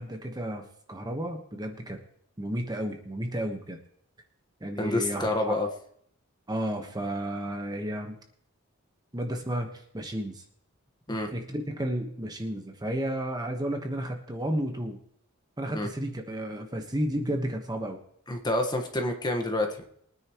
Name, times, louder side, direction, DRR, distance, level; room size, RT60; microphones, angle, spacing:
voice 1, 0.0-2.0 2.4-3.8 4.6-5.6 6.5-8.2 9.1-10.4 11.3-15.0 15.6-18.0, right 1 dB, 20° right, 4 dB, 1.3 m, -32 dB
voice 2, 4.8-5.7 11.1-11.3 15.7-15.9 18.3-19.8, left 1 dB, 20° left, 3 dB, 1.4 m, -28 dB
23.0 x 9.8 x 3.1 m, 0.68 s
head